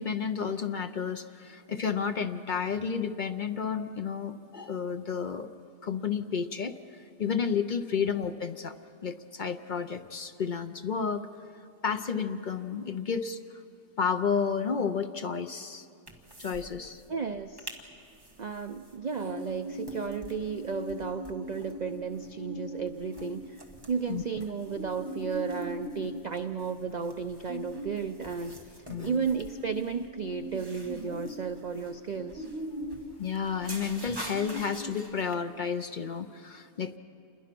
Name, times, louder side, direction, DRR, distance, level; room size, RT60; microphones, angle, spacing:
voice 1, 0.0-5.5 5.8-6.7 7.2-8.8 9.0-11.3 11.8-13.4 14.0-15.8 16.4-17.0 24.1-24.2 28.9-29.3 33.2-37.0, left 6 dB, 50° left, 8 dB, 0.6 m, -31 dB
sound 1, 16.1-16.7 17.0-17.1 17.4-17.8 18.2-35.3, equal, 15° right, 1.6 m, -41 dB
voice 2, 17.1-17.7 18.4-32.5, right 5 dB, 60° right, 9 dB, 0.4 m, -34 dB
28.0 x 21.5 x 6.0 m, 2.6 s
omnidirectional pair, 1.5 m